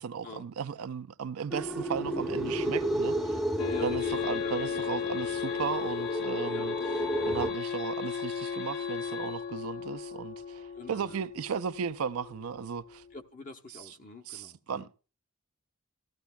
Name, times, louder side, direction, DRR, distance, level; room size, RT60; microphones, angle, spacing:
voice 1, 0.0-3.4 3.8-6.7 7.2-13.0 14.3-14.9, right 6 dB, 80° right, 0.5 m, -35 dB
sound 1, 1.5-7.5, right 1 dB, ahead, 0.7 m, -33 dB
sound 2, 3.6-13.2, left 7 dB, 70° left, 1.3 m, -35 dB
voice 2, 3.6-4.5 6.4-6.8 10.7-11.3 13.1-14.9, left 2 dB, 40° left, 0.9 m, -47 dB
14.5 x 13.0 x 2.3 m
head